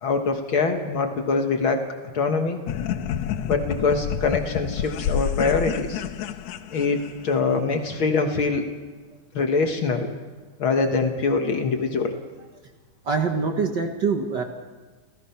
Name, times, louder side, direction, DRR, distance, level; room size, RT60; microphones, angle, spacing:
voice 1, 0.0-1.8 2.1-2.6 3.4-6.0 6.7-8.7 9.3-10.1 10.6-12.2, left 4 dB, 50° left, 5 dB, 1.7 m, -24 dB
sound 1, 2.7-7.4, left 9 dB, 75° left, 2.1 m, -29 dB
voice 2, 13.0-14.4, right 5 dB, 55° right, 4 dB, 1.2 m, -24 dB
29.5 x 15.5 x 5.8 m, 1.4 s
omnidirectional pair, 3.5 m